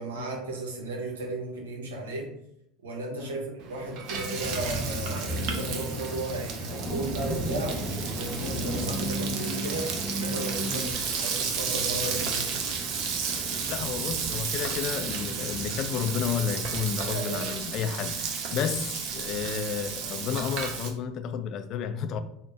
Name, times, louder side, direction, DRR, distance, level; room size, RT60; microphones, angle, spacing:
voice 1, 0.0-2.3 2.8-12.6 17.1-17.5, right 2 dB, 75° right, 0.8 m, -35 dB
Frying (food), 3.6-20.9, right 6 dB, 55° right, 0.6 m, -33 dB
sound 1, 4.1-10.8, right 1 dB, 15° right, 1.0 m, -38 dB
sound 2, 4.4-16.8, left 1 dB, 20° left, 0.8 m, -37 dB
voice 2, 13.7-22.2, left 7 dB, 45° left, 0.3 m, -32 dB
3.7 x 2.2 x 3.6 m
figure-of-eight pair, 75°, 0 cm